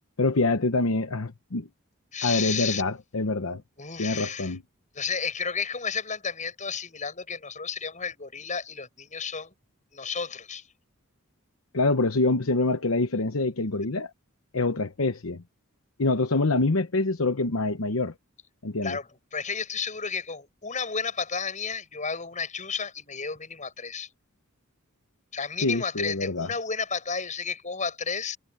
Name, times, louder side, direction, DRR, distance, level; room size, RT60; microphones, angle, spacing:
voice 1, 0.2-1.7 2.2-3.6 4.0-4.6 11.7-14.1 14.5-15.4 16.0-18.1 18.6-19.0 25.6-26.5, left 2 dB, 70° left, 0.9 m, -25 dB
voice 2, 2.1-2.8 3.8-4.5 4.9-9.5 9.9-10.6 18.8-24.1 25.3-28.4, left 5 dB, 35° left, 7.5 m, -32 dB
head